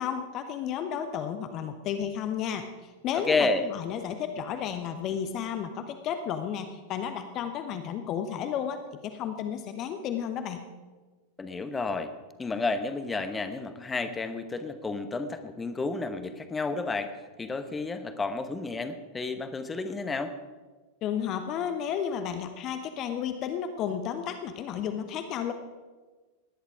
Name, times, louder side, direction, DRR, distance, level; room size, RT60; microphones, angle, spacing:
voice 1, 0.0-10.7 21.0-25.5, left 8 dB, 35° left, 8 dB, 1.0 m, -32 dB
voice 2, 3.1-3.7 11.4-12.1 12.4-20.4, left 3 dB, 15° left, 10 dB, 1.1 m, -31 dB
18.0 x 10.5 x 5.0 m, 1.3 s
figure-of-eight pair, 90°, 0 cm